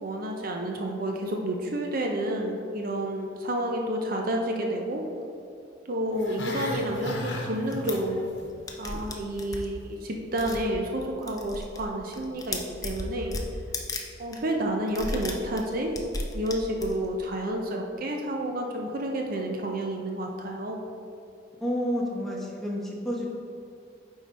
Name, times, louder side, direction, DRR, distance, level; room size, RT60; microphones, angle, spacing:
voice 1, 0.0-5.1 5.9-8.3 8.8-13.4 14.2-15.9 16.3-20.8, right 1 dB, 50° right, 1 dB, 0.6 m, -30 dB
Growling, 6.1-8.5 8.7-9.1 9.5-9.6, left 1 dB, 70° left, 1.1 m, -35 dB
sound 1, 7.7-7.9 8.4-8.5 8.7-9.7 10.4-10.7 11.0-11.9 12.1-14.0 14.3-14.4 14.9-17.1, left 2 dB, 20° left, 0.6 m, -34 dB
voice 2, 21.6-23.3, equal, ahead, -4 dB, 1.0 m, -30 dB
9.2 x 3.8 x 4.1 m, 2.4 s
head